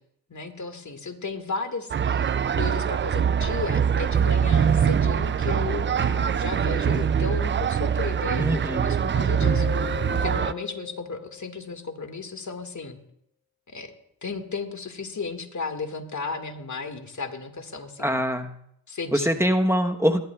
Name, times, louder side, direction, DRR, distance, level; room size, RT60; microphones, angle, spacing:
voice 1, 0.3-13.0 13.7-13.9 14.2-18.2 18.9-19.4, left 4 dB, 40° left, 6 dB, 2.0 m, -34 dB
sound 1, 1.9-10.5, right 7 dB, 30° right, 0.4 m, -23 dB
voice 2, 8.4-8.9 18.0-18.5 19.1-20.2, equal, 5° right, 5 dB, 1.1 m, -23 dB
Mallet percussion, 9.4-12.0, left 15 dB, 60° left, 0.9 m, -38 dB
19.0 x 12.0 x 2.4 m, 0.72 s
supercardioid pair, 50°, 43 cm